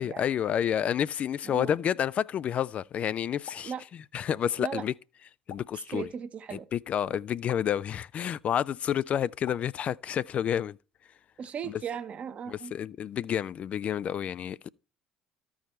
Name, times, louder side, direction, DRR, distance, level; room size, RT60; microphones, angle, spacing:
voice 1, 0.0-3.7 4.1-4.9 5.5-6.1 6.5-10.8 11.7-11.8 12.5-14.7, left 9 dB, 45° left, 0.3 m, -29 dB
sound 1, 3.5-3.8 5.5-5.8 7.5-7.7 9.5-9.8, left 7 dB, 60° left, 1.3 m, -46 dB
voice 2, 5.9-6.7 11.4-12.7, right 7 dB, 45° right, 1.0 m, -37 dB
13.5 x 4.8 x 4.3 m
figure-of-eight pair, 55°, 3 cm